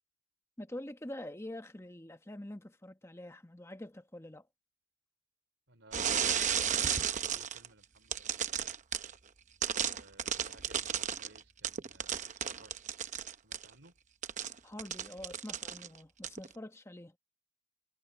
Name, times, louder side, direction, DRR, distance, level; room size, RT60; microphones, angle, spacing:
voice 1, 0.6-4.5 14.6-17.2, left 1 dB, 15° left, 1.1 m, -45 dB
voice 2, 5.7-8.7 9.7-12.8 13.4-14.0, right 2 dB, 65° right, 4.0 m, -58 dB
sound 1, 5.9-7.7 8.1-9.1 9.6-13.7 14.2-16.0 16.2-16.5, right 8 dB, 40° right, 0.8 m, -33 dB
head